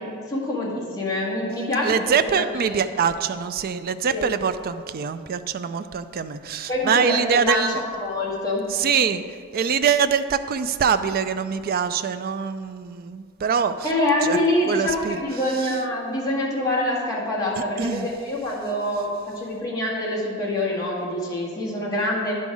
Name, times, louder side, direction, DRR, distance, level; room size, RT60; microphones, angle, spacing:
voice 1, 0.0-2.9 4.1-4.2 6.7-8.6 13.8-22.3, left 1 dB, 15° left, -6 dB, 1.9 m, -25 dB
voice 2, 1.8-7.8 8.7-9.2 9.5-13.9 14.2-14.4 14.7-15.2 15.6-15.7 17.8-18.1, right 6 dB, 45° right, 11 dB, 0.4 m, -24 dB
10.5 x 5.4 x 4.9 m, 2.1 s
head